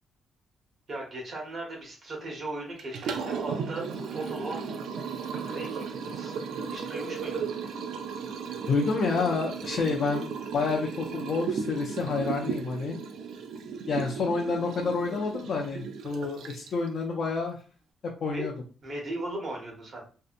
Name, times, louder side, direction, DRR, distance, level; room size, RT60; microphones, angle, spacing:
voice 1, 0.9-4.6 5.4-6.4 6.7-7.4 18.3-18.5 18.8-20.0, right 2 dB, 40° right, -1 dB, 0.9 m, -37 dB
Liquid, 2.8-16.9, right 6 dB, 85° right, 0.3 m, -35 dB
voice 2, 8.7-13.0 13.9-17.6 18.2-18.5, left 4 dB, 50° left, -1 dB, 0.4 m, -29 dB
2.6 x 2.1 x 2.4 m, 0.38 s
wide cardioid pair, 170°, 0 cm